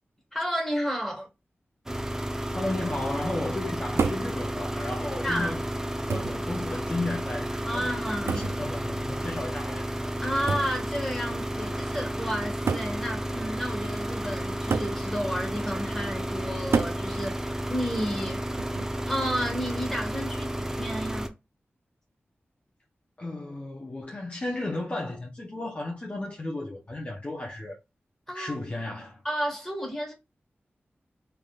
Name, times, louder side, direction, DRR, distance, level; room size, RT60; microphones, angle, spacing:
voice 1, 0.3-1.3 5.2-5.6 7.6-8.4 10.2-18.4 19.1-21.3 28.3-28.6 29.2-30.1, equal, 5° left, 1.6 m, -32 dB
sound 1, 1.9-21.3, equal, 10° right, 0.6 m, -32 dB
voice 2, 2.5-5.6 6.0-9.9 23.2-27.8 28.3-29.2, left 2 dB, 30° left, 0.8 m, -34 dB
sound 2, 4.0-4.3 5.4-5.5 6.1-6.5 8.3-8.6 10.5-10.8 11.8-11.9 12.7-13.0 14.7-15.0 16.7-17.0 18.6-19.0, right 5 dB, 85° right, 0.4 m, -28 dB
3.9 x 3.4 x 2.4 m
wide cardioid pair, 105°, 4 cm